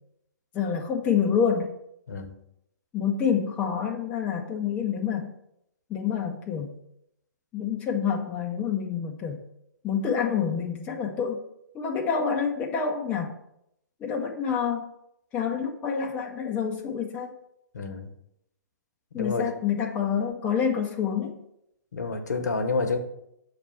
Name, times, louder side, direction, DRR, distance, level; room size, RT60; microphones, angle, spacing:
voice 1, 0.5-1.8 2.9-5.3 5.9-6.8 7.5-9.4 9.8-11.4 11.7-13.4 14.0-14.9 15.3-17.3 19.1-21.4, left 7 dB, 15° left, 2 dB, 0.4 m, -27 dB
voice 2, 17.7-18.1 19.1-19.5 21.9-23.0, left 4 dB, 65° left, 7 dB, 0.8 m, -28 dB
6.5 x 3.1 x 5.4 m, 0.78 s
figure-of-eight pair, 125°, 10 cm